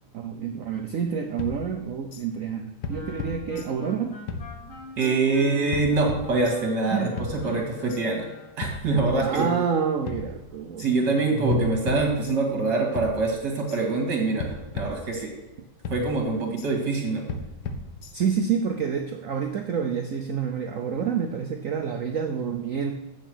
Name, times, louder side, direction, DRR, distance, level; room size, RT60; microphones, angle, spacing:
voice 1, 0.1-4.2 6.9-7.1 9.2-10.9 18.1-22.9, right 7 dB, 85° right, 5 dB, 0.7 m, -28 dB
sound 1, 1.4-2.3 2.8-4.0 4.3-5.1 5.7-6.8 7.2-8.0 8.6-9.8 10.1-10.9 11.5-12.7 13.0-13.8 14.4-15.6 15.8-16.7 17.3-18.4, left 3 dB, 65° left, 1.2 m, -36 dB
Wind instrument woodwind instrument, 2.9-8.6, left 3 dB, 85° left, 2.4 m, -43 dB
voice 2, 5.0-8.3 8.6-9.5 10.8-15.3 15.9-17.2, right 3 dB, 60° right, 1 dB, 2.4 m, -24 dB
8.0 x 6.4 x 6.1 m, 1.0 s
omnidirectional pair, 2.2 m